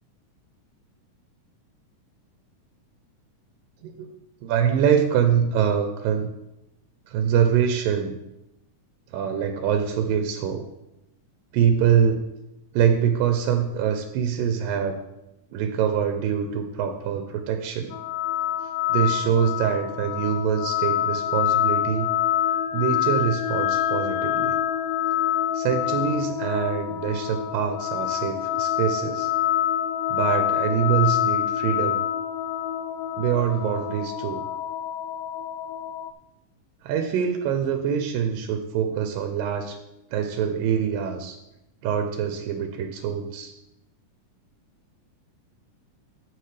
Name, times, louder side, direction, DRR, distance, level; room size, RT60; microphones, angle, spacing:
voice 1, 4.4-6.3 7.1-8.2 9.1-10.7 11.5-12.2 12.7-15.0 15.5-18.0 18.9-22.1 22.7-24.6 25.5-29.3 30.1-32.0 33.2-34.4 36.8-39.8 40.1-41.4 41.8-43.5, right 8 dB, 90° right, 5 dB, 2.4 m, -24 dB
sound 1, 17.9-36.1, left 11 dB, 80° left, 2.0 m, -26 dB
14.0 x 6.3 x 3.3 m, 0.89 s
omnidirectional pair, 3.8 m